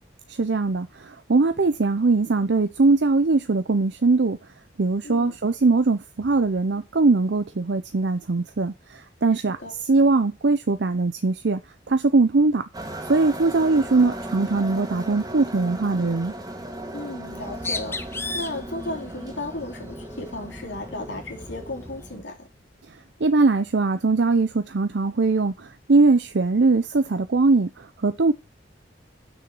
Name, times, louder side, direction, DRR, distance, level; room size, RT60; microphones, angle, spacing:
voice 1, 0.3-4.4 4.8-11.6 11.9-12.6 13.1-16.3 22.9-28.3, right 3 dB, 65° right, 0.6 m, -21 dB
voice 2, 5.0-5.4 9.5-9.8 16.9-22.5, left 2 dB, 85° left, 3.1 m, -35 dB
sound 1, 12.7-22.2, right 1 dB, 20° right, 1.7 m, -37 dB
Bird, 17.3-22.1, left 3 dB, 15° left, 0.9 m, -37 dB
6.4 x 6.3 x 7.0 m
head